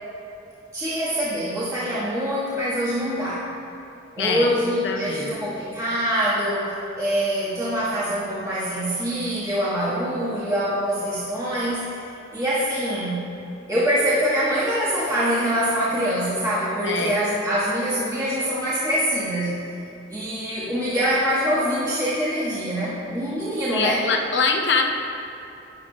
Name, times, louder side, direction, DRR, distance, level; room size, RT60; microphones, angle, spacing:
voice 1, 0.7-3.5 4.2-12.0 12.3-13.3 13.7-19.7 20.1-24.0, equal, 15° right, -11 dB, 1.6 m, -24 dB
voice 2, 4.2-4.5 4.8-5.4 16.8-17.2 23.7-24.8, left 4 dB, 60° left, 3 dB, 0.8 m, -23 dB
13.0 x 9.3 x 2.4 m, 2.8 s
head